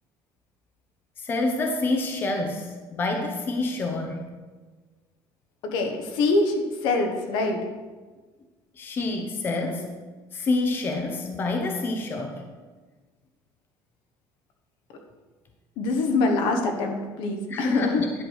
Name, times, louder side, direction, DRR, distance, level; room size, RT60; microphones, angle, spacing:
voice 1, 1.2-4.2 8.8-9.9 10.3-12.5 17.5-18.1, left 2 dB, 25° left, 3 dB, 0.8 m, -27 dB
voice 2, 5.6-7.6 15.8-18.1, left 3 dB, 70° left, 4 dB, 1.3 m, -24 dB
10.5 x 4.8 x 6.5 m, 1.4 s
cardioid pair, 175°, 9 cm